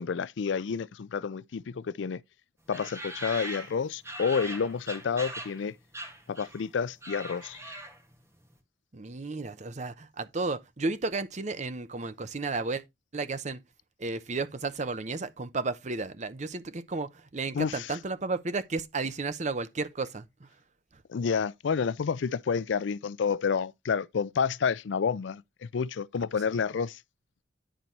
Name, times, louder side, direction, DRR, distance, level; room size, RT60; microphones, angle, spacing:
voice 1, 0.0-2.2 2.7-5.7 6.3-7.6 17.5-18.0 21.1-25.4 25.7-27.0, left 6 dB, 75° left, 0.4 m, -29 dB
sound 1, 2.7-5.6 5.9-6.7 6.9-8.1, right 1 dB, 15° right, 1.8 m, -40 dB
voice 2, 8.9-12.8 13.1-13.6 14.0-20.5, right 3 dB, 40° right, 0.7 m, -33 dB
10.0 x 4.1 x 4.4 m
head